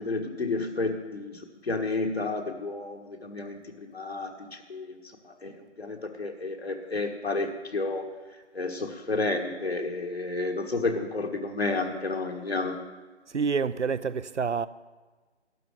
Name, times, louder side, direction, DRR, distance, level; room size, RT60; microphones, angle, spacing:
voice 1, 0.0-5.0 5.2-8.1 8.5-12.8, left 3 dB, 60° left, 1.5 m, -31 dB
voice 2, 13.3-14.7, right 5 dB, 80° right, 0.7 m, -27 dB
12.5 x 6.9 x 9.6 m
figure-of-eight pair, 160°, 35 cm